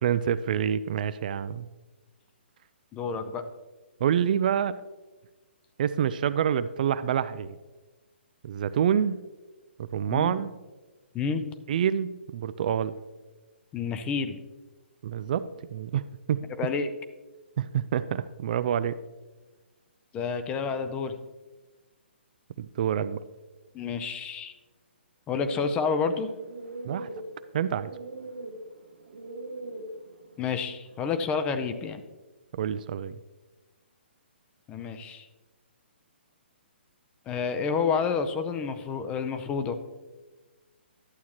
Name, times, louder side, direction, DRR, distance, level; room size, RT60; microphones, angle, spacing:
voice 1, 0.0-1.7 4.0-4.7 5.8-7.6 8.4-9.2 9.8-10.5 11.7-13.0 15.0-16.0 16.3-16.4 17.6-19.0 22.6-23.2 26.8-27.1 27.5-27.9 32.5-33.2, right 9 dB, 45° right, 14 dB, 0.3 m, -27 dB
voice 2, 2.9-3.5 10.1-10.3 11.1-11.4 13.7-14.4 16.6-16.9 20.1-21.2 23.7-24.5 25.3-26.3 30.4-32.0 34.7-35.3 37.3-39.8, left 5 dB, 15° left, 8 dB, 0.6 m, -29 dB
sound 1, 25.4-31.6, right 2 dB, 75° right, 1.1 m, -41 dB
11.5 x 8.2 x 3.0 m, 1.2 s
figure-of-eight pair, 130°, 6 cm